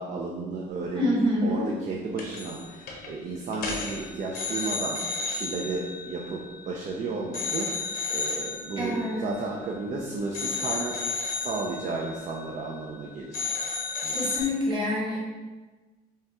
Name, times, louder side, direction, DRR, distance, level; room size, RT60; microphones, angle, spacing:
voice 1, 0.0-1.1 1.4-13.5 14.0-14.2, right 3 dB, 50° right, -1 dB, 0.5 m, -33 dB
voice 2, 0.9-1.6 8.8-9.3 14.1-15.2, left 1 dB, 25° right, -4 dB, 1.4 m, -26 dB
sound 1, 2.2-2.6 2.9-3.1 3.5-6.9 7.3-9.9 10.3-13.0 13.3-14.4, left 4 dB, 60° left, 0.9 m, -33 dB
5.6 x 2.3 x 2.9 m, 1.3 s
cardioid pair, 110°, 17 cm